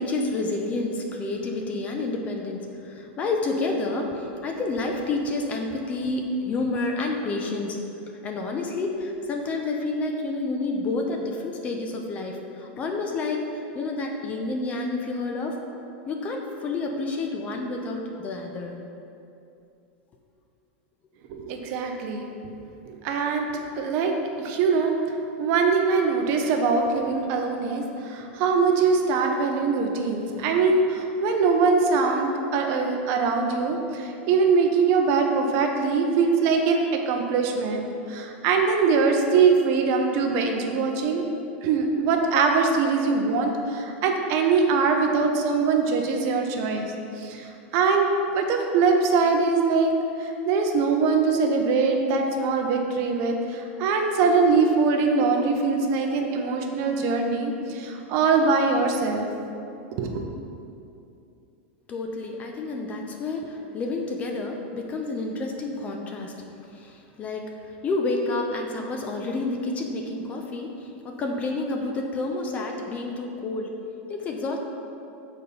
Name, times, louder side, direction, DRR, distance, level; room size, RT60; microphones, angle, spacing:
voice 1, 0.0-7.8 8.2-15.6 16.1-18.7 61.9-66.4 66.7-67.5 67.8-73.7 74.1-74.6, left 2 dB, 25° left, 2 dB, 0.6 m, -29 dB
voice 2, 21.3-22.3 22.9-23.5 23.8-24.1 24.4-25.0 25.4-41.2 41.6-47.5 47.7-48.1 48.3-49.9 50.2-59.3 59.9-60.2, right 4 dB, 45° right, 3 dB, 0.7 m, -22 dB
6.6 x 4.2 x 5.3 m, 2.7 s
supercardioid pair, 155°, 6 cm